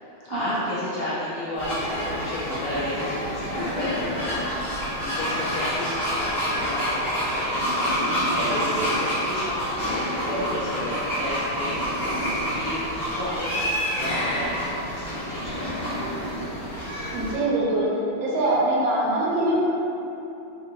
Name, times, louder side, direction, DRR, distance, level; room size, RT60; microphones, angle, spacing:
voice 1, 0.0-9.9 10.2-11.8 12.5-15.8, left 1 dB, 85° left, -11 dB, 0.7 m, -32 dB
sound 1, 1.5-17.3, equal, 50° left, 1.5 m, -34 dB
sound 2, 1.6-17.3, equal, 5° left, 0.8 m, -29 dB
voice 2, 17.1-17.9 18.2-19.6, right 1 dB, 75° right, -5 dB, 1.3 m, -23 dB
3.4 x 2.8 x 2.6 m, 2.9 s
omnidirectional pair, 2.2 m